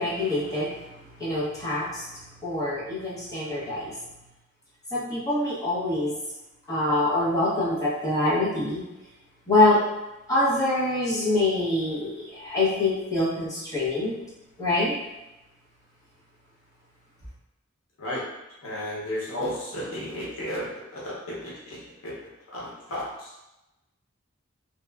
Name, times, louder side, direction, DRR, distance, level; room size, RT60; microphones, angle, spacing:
voice 1, 0.0-4.0 4.9-6.1 6.7-8.8 9.5-9.8 10.3-14.2 14.6-14.9, left 2 dB, 15° left, -9 dB, 0.7 m, -25 dB
voice 2, 18.6-20.6 20.9-22.1 22.5-23.3, left 1 dB, 85° left, -6 dB, 0.8 m, -33 dB
2.8 x 2.2 x 2.3 m, 0.96 s
head